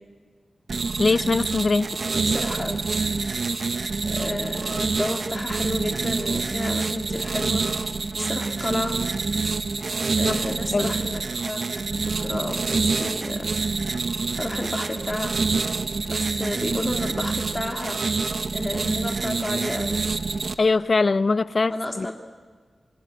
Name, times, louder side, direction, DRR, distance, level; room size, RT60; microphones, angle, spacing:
sound 1, 0.7-20.5, right 4 dB, 55° right, 1.0 m, -27 dB
voice 1, 1.0-1.9 10.2-10.9 20.6-22.1, left 3 dB, 45° left, 17 dB, 0.7 m, -22 dB
voice 2, 2.2-2.8 4.0-7.6 8.1-8.9 10.2-13.5 13.8-14.0 14.4-15.4 16.1-18.1 18.5-20.0 21.7-22.1, left 1 dB, 20° left, 3 dB, 1.9 m, -31 dB
26.5 x 20.5 x 9.8 m, 1.5 s
wide cardioid pair, 110°, 0 cm